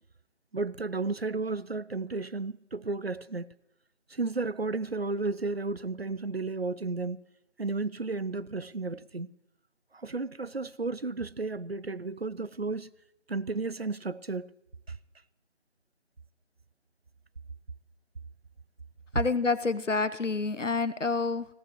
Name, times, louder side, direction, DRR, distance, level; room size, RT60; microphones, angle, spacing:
voice 1, 0.5-3.5 4.1-7.2 7.6-9.3 9.9-12.9 13.3-14.5 14.9-15.0, right 3 dB, 55° right, 0.6 m, -33 dB
voice 2, 19.1-21.5, left 4 dB, 75° left, 0.9 m, -28 dB
20.0 x 17.0 x 3.1 m
figure-of-eight pair, 170°, 38 cm